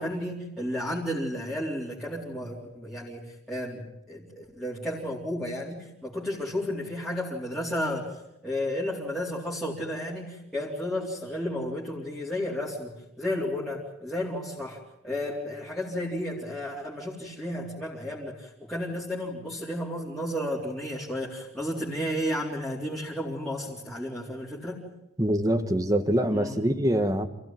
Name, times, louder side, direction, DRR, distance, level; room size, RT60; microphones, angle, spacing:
voice 1, 0.0-8.1 8.4-12.9 13.2-24.8 26.3-26.6, left 1 dB, ahead, 3.9 m, -32 dB
voice 2, 25.2-27.3, right 1 dB, 15° right, 1.4 m, -24 dB
28.0 x 17.0 x 9.3 m
head